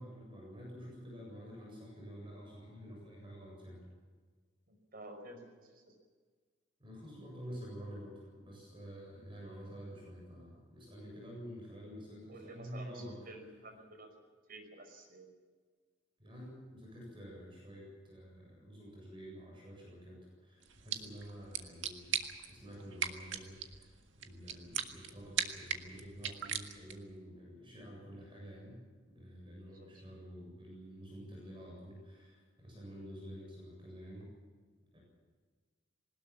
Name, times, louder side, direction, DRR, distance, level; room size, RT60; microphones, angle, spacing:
voice 1, 0.0-3.8 6.8-13.2 16.2-22.2 22.5-28.8 29.1-34.3 34.9-35.0, equal, 30° right, -2 dB, 7.7 m, -49 dB
voice 2, 4.7-5.9 12.3-14.1 14.5-15.3 29.7-29.9, right 2 dB, 50° right, 4 dB, 5.5 m, -51 dB
sound 1, 20.6-27.1, right 8 dB, 80° right, 1.8 m, -40 dB
21.0 x 19.5 x 7.3 m, 1.5 s
head